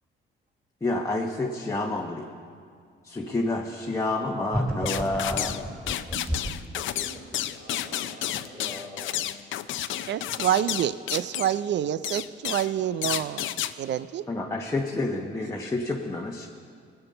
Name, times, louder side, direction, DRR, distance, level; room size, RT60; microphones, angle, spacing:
voice 1, 0.8-2.3 3.0-5.8 13.1-13.2 14.3-16.5, left 2 dB, 15° left, -1 dB, 1.1 m, -29 dB
sound 1, 4.5-6.7, equal, 10° right, 4.1 m, -30 dB
sound 2, 4.9-5.6 5.9-11.6 12.0-12.7 13.0-13.7, left 12 dB, 75° left, 0.6 m, -31 dB
voice 2, 6.7-9.3, left 1 dB, 30° right, -3 dB, 3.5 m, -44 dB
voice 3, 9.8-14.3, right 10 dB, 65° right, 16 dB, 0.5 m, -28 dB
19.0 x 7.9 x 6.8 m, 2.2 s
cardioid pair, 90°, 20 cm